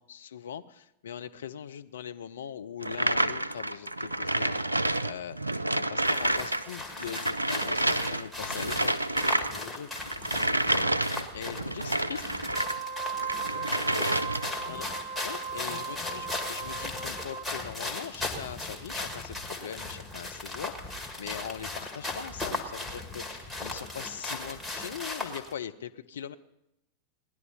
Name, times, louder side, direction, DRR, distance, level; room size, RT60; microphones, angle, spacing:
voice 1, 0.0-9.9 11.3-12.2 14.7-14.8 15.2-26.3, left 8 dB, 65° left, 10 dB, 0.5 m, -41 dB
sound 1, 2.8-6.6 6.9-12.8 13.2-14.6, right 1 dB, 85° right, 0.4 m, -29 dB
sound 2, 6.0-25.5, left 2 dB, 5° left, 1.8 m, -37 dB
voice 2, 11.9-12.7 13.5-14.3 14.6-15.0 15.6-16.2, left 8 dB, 40° left, -3 dB, 4.8 m, -50 dB
Wind instrument woodwind instrument, 12.4-17.7, right 6 dB, 40° right, 1.0 m, -37 dB
17.5 x 11.0 x 4.1 m, 0.85 s
figure-of-eight pair, 90°, 0 cm